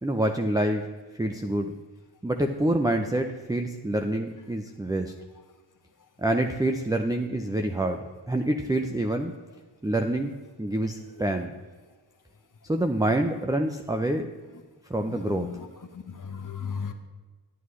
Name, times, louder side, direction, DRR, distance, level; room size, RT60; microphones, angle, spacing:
voice 1, 0.0-1.7 2.2-5.1 6.2-9.3 9.8-10.3 10.6-11.5 12.6-14.3 14.9-15.5, right 1 dB, 10° right, 4 dB, 0.6 m, -27 dB
voice 2, 15.1-15.6 16.1-16.9, left 6 dB, 40° left, 7 dB, 1.0 m, -35 dB
11.0 x 8.2 x 3.2 m, 1.3 s
cardioid pair, 45°, 49 cm